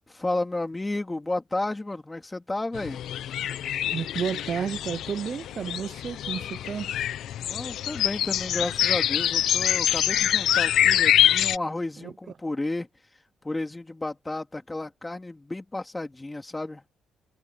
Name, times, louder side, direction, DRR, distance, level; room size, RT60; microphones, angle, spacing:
voice 1, 0.1-3.0 7.4-12.9 13.4-16.8, left 2 dB, 15° left, 2.7 m, -32 dB
sound 1, 2.7-11.6, left 11 dB, 75° left, 1.0 m, -25 dB
voice 2, 3.9-6.9 12.0-12.1, right 7 dB, 50° right, 0.7 m, -31 dB
cardioid pair, 90°, 0 cm